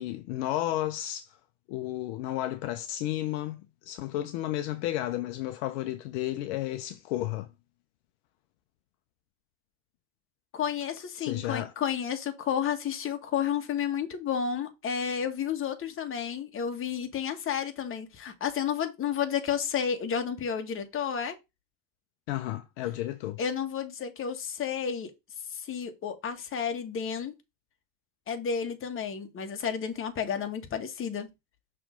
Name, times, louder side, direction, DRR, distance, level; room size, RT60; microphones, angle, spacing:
voice 1, 0.0-1.4 1.7-3.6 3.8-7.5 11.2-11.7 22.3-23.4, left 14 dB, 70° left, 0.8 m, -32 dB
voice 2, 10.5-21.3 23.4-25.1 25.5-27.3 28.3-31.3, left 7 dB, 35° left, 1.4 m, -31 dB
5.9 x 3.4 x 5.2 m
hypercardioid pair, 90°, 36 cm